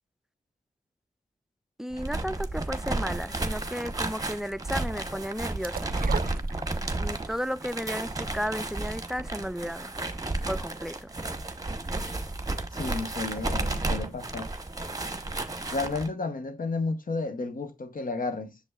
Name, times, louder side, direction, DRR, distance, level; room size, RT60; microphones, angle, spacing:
voice 1, 1.8-5.9 7.0-9.9 10.5-11.1, equal, 5° right, 0.4 m, -33 dB
sound 1, 1.9-16.1, right 2 dB, 25° right, 1.0 m, -32 dB
sound 2, 5.6-7.2 7.5-7.6, right 7 dB, 85° right, 0.4 m, -36 dB
voice 2, 12.8-14.5 15.7-18.6, left 3 dB, 75° left, 0.9 m, -32 dB
7.9 x 6.8 x 2.3 m
cardioid pair, 55°, 14 cm